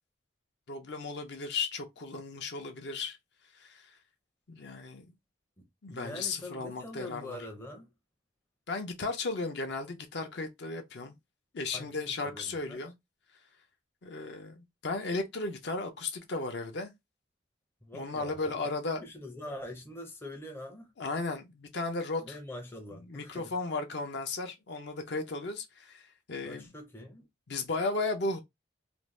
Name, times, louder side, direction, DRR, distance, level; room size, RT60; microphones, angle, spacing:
voice 1, 0.7-3.2 3.5-3.9 4.5-5.1 5.8-7.4 8.7-11.2 11.5-12.9 14.0-16.9 17.9-19.0 21.0-22.4 23.1-26.7 27.5-28.4, left 3 dB, 60° left, 0.5 m, -35 dB
voice 2, 5.6-7.9 11.7-12.8 17.8-20.9 22.2-23.5 26.4-27.3, left 1 dB, 10° left, 0.5 m, -44 dB
2.6 x 2.0 x 3.1 m
head